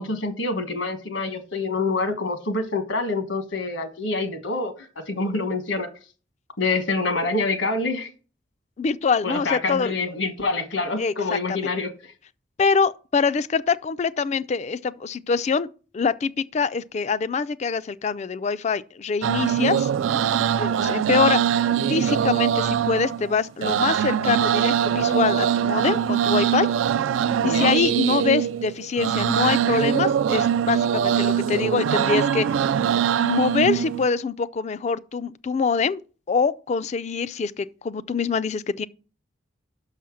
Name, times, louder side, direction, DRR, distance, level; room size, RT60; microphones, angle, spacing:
voice 1, 0.0-5.9 6.6-8.1 9.2-12.1 27.4-27.8, left 3 dB, 75° left, 1.3 m, -26 dB
voice 2, 8.8-9.9 11.0-11.7 12.6-15.7 15.9-19.9 20.6-21.4 21.9-26.7 27.4-32.6 33.2-36.0 36.3-38.9, left 5 dB, 35° left, 0.3 m, -24 dB
sound 1, 19.2-34.1, right 9 dB, 85° right, 0.3 m, -22 dB
6.3 x 5.7 x 6.2 m
head